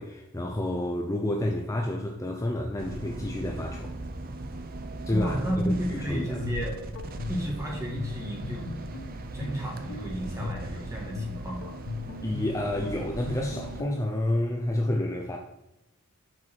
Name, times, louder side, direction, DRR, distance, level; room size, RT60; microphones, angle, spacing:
voice 1, 0.0-4.0 5.1-5.4 5.6-6.4 12.2-15.4, left 1 dB, 15° left, 1 dB, 0.5 m, -29 dB
sound 1, 2.8-13.8, right 2 dB, 40° right, 0.6 m, -39 dB
voice 2, 5.1-6.8 7.3-8.7 9.3-11.7, right 1 dB, 15° right, -2 dB, 1.8 m, -32 dB
Guitar, 6.1-14.1, left 4 dB, 85° left, 0.6 m, -39 dB
6.3 x 4.5 x 6.1 m, 0.88 s
head